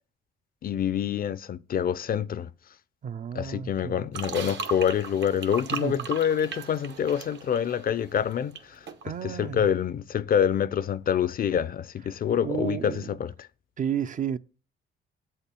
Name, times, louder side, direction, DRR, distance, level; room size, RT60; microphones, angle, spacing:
voice 1, 0.6-2.5 3.3-8.9 9.2-13.3, left 8 dB, 50° left, 0.5 m, -26 dB
voice 2, 3.0-4.1 5.7-6.1 9.0-9.7 12.4-13.2 13.8-14.4, right 8 dB, 40° right, 0.4 m, -32 dB
sound 1, 4.1-8.6 8.9-9.0, right 6 dB, 65° right, 0.9 m, -37 dB
7.8 x 4.4 x 6.8 m
cardioid pair, 90°, 20 cm